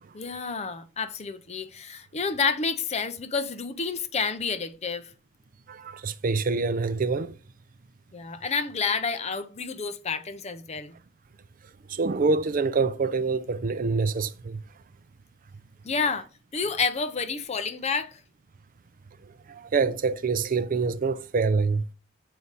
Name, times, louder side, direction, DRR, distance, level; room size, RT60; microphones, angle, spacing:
voice 1, 0.1-5.1 8.1-10.9 15.8-16.3 16.5-18.2, left 5 dB, 35° left, 0.6 m, -29 dB
voice 2, 5.7-7.4 11.9-14.6 19.5-21.8, right 4 dB, 45° right, 0.5 m, -26 dB
6.8 x 4.8 x 4.0 m
head